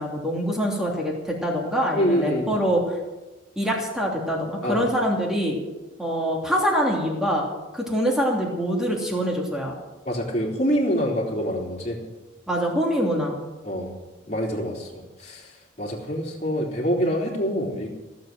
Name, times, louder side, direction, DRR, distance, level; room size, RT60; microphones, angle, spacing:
voice 1, 0.0-2.9 3.6-5.6 6.0-7.5 7.7-9.7 12.5-13.4, equal, 5° right, -1 dB, 3.0 m, -24 dB
voice 2, 1.9-2.6 4.6-4.9 10.1-12.0 13.6-13.9 14.3-15.5 15.8-17.9, equal, 35° left, -2 dB, 3.4 m, -25 dB
16.5 x 7.8 x 9.2 m, 1.1 s
head